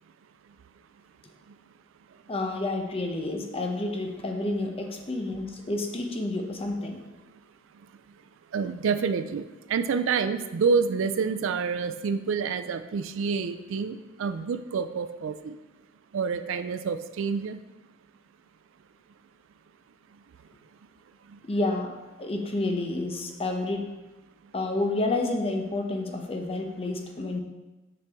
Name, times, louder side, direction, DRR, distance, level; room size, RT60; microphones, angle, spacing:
voice 1, 2.3-7.0 21.5-23.9 24.5-27.4, left 2 dB, 30° left, 3 dB, 0.7 m, -29 dB
voice 2, 8.5-15.6 16.1-17.6, right 5 dB, 70° right, 10 dB, 0.4 m, -28 dB
6.7 x 5.2 x 3.5 m, 1.1 s
head